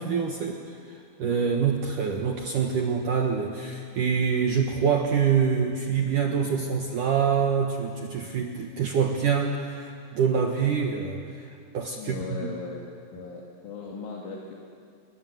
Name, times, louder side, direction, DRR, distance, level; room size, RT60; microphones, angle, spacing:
voice 1, 0.0-11.5 11.7-12.5, right 6 dB, 75° right, 2 dB, 1.9 m, -26 dB
voice 2, 12.0-12.8 13.1-14.5, left 4 dB, 70° left, -2 dB, 4.6 m, -38 dB
29.5 x 23.5 x 7.9 m, 2.4 s
omnidirectional pair, 5.9 m